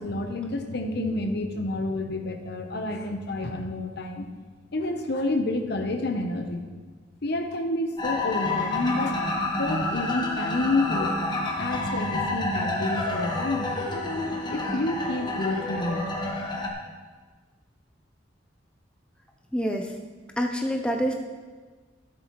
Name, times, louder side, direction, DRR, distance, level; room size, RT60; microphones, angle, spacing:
voice 1, 0.0-4.3 4.7-6.7 7.2-9.2 9.6-11.1 11.6-13.7 14.5-16.1, left 2 dB, 60° left, 5 dB, 0.9 m, -29 dB
sound 1, 8.0-16.7, left 2 dB, 25° left, 1.3 m, -29 dB
voice 2, 19.5-20.0 20.4-21.1, equal, 5° left, 1 dB, 0.6 m, -26 dB
13.0 x 11.5 x 3.1 m, 1.4 s
head